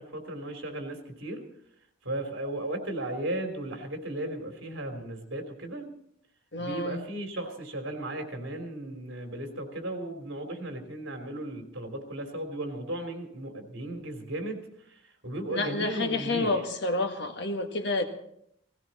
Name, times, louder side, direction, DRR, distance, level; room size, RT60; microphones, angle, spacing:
voice 1, 0.0-1.4 2.0-5.8 6.6-16.6, right 1 dB, 70° right, 4 dB, 3.3 m, -36 dB
voice 2, 6.5-7.0 15.5-18.0, left 2 dB, 55° left, 4 dB, 1.7 m, -29 dB
18.0 x 17.0 x 4.2 m, 0.71 s
head